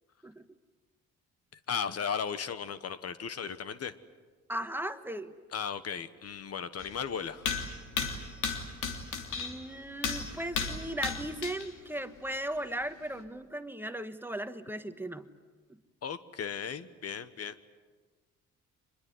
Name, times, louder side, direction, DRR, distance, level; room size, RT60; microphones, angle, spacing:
voice 1, 1.7-3.9 5.5-7.7 16.0-17.7, left 7 dB, 55° left, 13 dB, 1.2 m, -36 dB
voice 2, 4.5-5.3 8.0-8.1 9.4-15.3, right 1 dB, 5° right, 9 dB, 1.3 m, -37 dB
sound 1, 6.8-6.9 7.4-9.7 10.0-11.7 12.2-12.3 13.2-13.3, left 5 dB, 85° left, 3.0 m, -35 dB
25.5 x 21.5 x 9.5 m, 1.4 s
cardioid pair, 90°, 30 cm